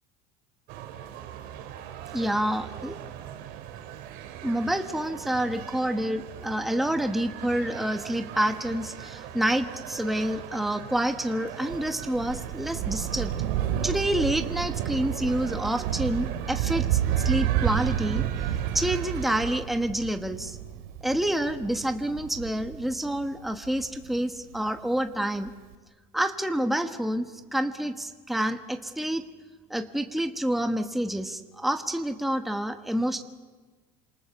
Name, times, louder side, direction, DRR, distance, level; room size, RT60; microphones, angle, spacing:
sound 1, 0.7-19.6, right 11 dB, 65° right, 2.6 m, -41 dB
voice 1, 2.1-2.9 4.4-13.3 13.8-17.0 17.2-18.2 18.7-20.6 21.0-25.5 26.1-29.2 29.7-33.2, right 1 dB, ahead, 7 dB, 1.2 m, -28 dB
Thunder, 11.7-24.6 25.5-25.6, right 11 dB, 85° right, 2.4 m, -30 dB
28.5 x 26.5 x 7.2 m, 1.4 s
supercardioid pair, 140°, 18 cm